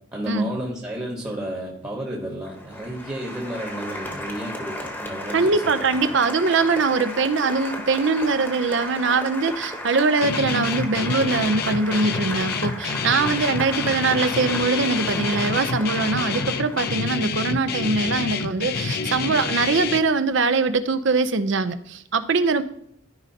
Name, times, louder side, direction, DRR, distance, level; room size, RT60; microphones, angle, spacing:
voice 1, 0.1-5.7 6.1-6.2 13.8-14.2, equal, 15° right, 1.2 m, -32 dB
Applause, 2.4-17.3, left 1 dB, 10° left, 1.0 m, -34 dB
voice 2, 5.3-22.6, right 4 dB, 60° right, 0.6 m, -22 dB
Guitar, 10.2-20.0, left 5 dB, 50° left, 0.5 m, -27 dB
13.5 x 5.2 x 2.8 m
head